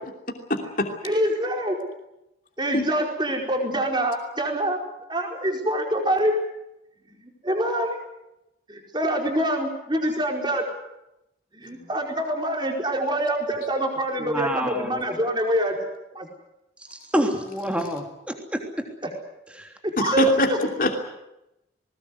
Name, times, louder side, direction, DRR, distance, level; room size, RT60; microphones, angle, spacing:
voice 1, 0.5-0.9 2.7-2.9 20.0-20.5 20.8-20.9, left 2 dB, 45° left, 2 dB, 2.9 m, -23 dB
voice 2, 1.0-1.8 2.6-4.8 5.1-6.3 7.0-8.0 8.7-10.6 11.5-15.8 16.1-16.3 20.0-20.6, right 1 dB, 25° right, 1 dB, 4.6 m, -25 dB
voice 3, 14.2-15.2 16.9-18.6 19.5-19.7, equal, 5° right, 3 dB, 3.2 m, -28 dB
20.5 x 20.0 x 9.8 m, 0.88 s
head